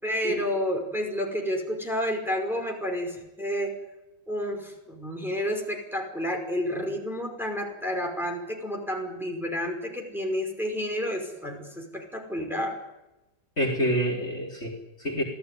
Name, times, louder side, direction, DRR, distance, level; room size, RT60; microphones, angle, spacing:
voice 1, 0.0-3.7 4.3-12.8, equal, ahead, 1 dB, 5.4 m, -30 dB
voice 2, 13.6-15.2, equal, 35° left, -1 dB, 4.6 m, -27 dB
28.0 x 17.5 x 9.4 m, 0.98 s
omnidirectional pair, 1.9 m